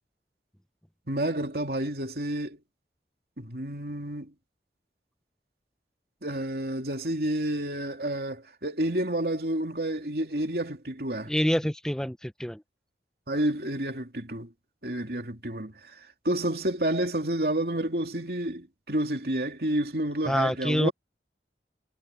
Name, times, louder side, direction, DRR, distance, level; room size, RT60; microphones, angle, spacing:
voice 1, 1.1-2.6 3.4-4.3 6.2-11.3 13.3-14.5 14.8-20.9, right 1 dB, 60° right, 3.1 m, -30 dB
voice 2, 11.3-12.6 20.3-20.9, equal, 5° left, 0.9 m, -26 dB
head